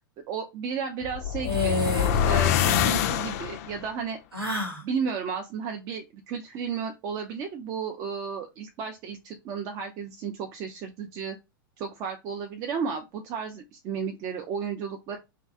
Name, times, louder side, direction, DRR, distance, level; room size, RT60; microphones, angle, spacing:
voice 1, 0.3-1.8 2.2-4.2 4.8-11.4 11.8-15.2, right 6 dB, 30° right, 4 dB, 0.4 m, -33 dB
sound 1, 1.0-3.9, left 10 dB, 45° left, 0.4 m, -25 dB
sound 2, 1.4-2.3 2.6-3.1 4.3-4.8, left 2 dB, 85° right, 0.8 m, -30 dB
2.6 x 2.1 x 2.4 m, 0.24 s
figure-of-eight pair, 95°, 12 cm